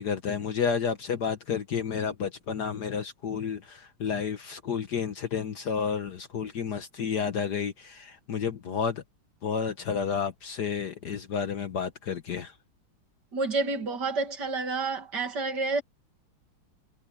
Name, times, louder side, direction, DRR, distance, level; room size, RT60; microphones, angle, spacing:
voice 1, 0.0-9.0 9.4-12.5, left 6 dB, 55° left, 1.5 m, -31 dB
voice 2, 13.3-15.8, right 3 dB, 50° right, 2.8 m, -29 dB
omnidirectional pair, 2.4 m